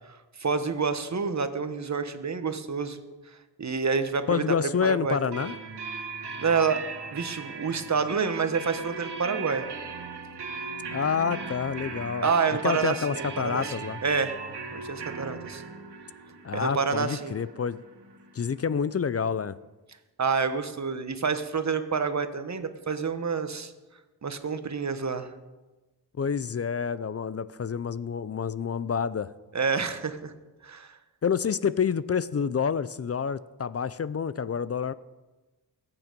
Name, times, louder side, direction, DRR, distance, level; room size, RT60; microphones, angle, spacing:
voice 1, 0.4-3.0 3.6-4.4 4.8-5.2 6.4-6.8 7.1-9.7 12.2-13.7 14.0-14.3 14.7-15.6 16.5-17.3 20.2-23.7 24.2-25.3 29.5-30.3 30.6-31.0, right 5 dB, 40° right, 10 dB, 1.3 m, -28 dB
voice 2, 4.3-5.6 10.9-14.0 16.4-17.8 18.3-19.6 26.2-29.3 31.2-34.9, left 6 dB, 35° left, 17 dB, 0.5 m, -28 dB
sound 1, 5.3-18.9, right 4 dB, 70° right, 1.9 m, -38 dB
21.0 x 9.0 x 5.3 m, 1.2 s
cardioid pair, 85°, 42 cm